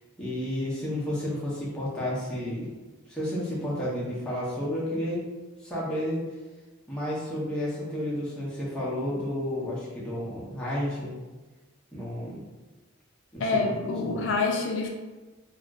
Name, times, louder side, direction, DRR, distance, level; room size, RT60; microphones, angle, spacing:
voice 1, 0.2-2.7 3.1-5.2 5.6-6.2 6.9-11.2 11.9-12.4 13.3-13.6 14.0-14.3, left 1 dB, 5° left, -8 dB, 0.6 m, -31 dB
voice 2, 13.4-14.9, left 3 dB, 65° left, 1 dB, 0.3 m, -26 dB
2.4 x 2.0 x 3.5 m, 1.2 s
head